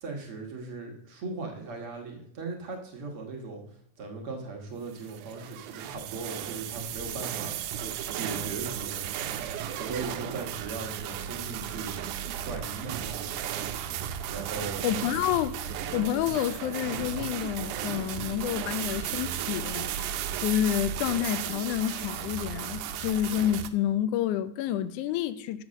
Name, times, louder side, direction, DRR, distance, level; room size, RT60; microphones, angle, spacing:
voice 1, 0.0-3.6 4.0-13.4 14.3-14.9, right 3 dB, 55° right, 2.1 m, -38 dB
sound 1, 4.9-23.7, right 10 dB, 85° right, 2.1 m, -35 dB
voice 2, 14.8-15.6 15.9-25.6, left 11 dB, 85° left, 2.1 m, -29 dB
8.3 x 6.4 x 6.3 m
omnidirectional pair, 3.5 m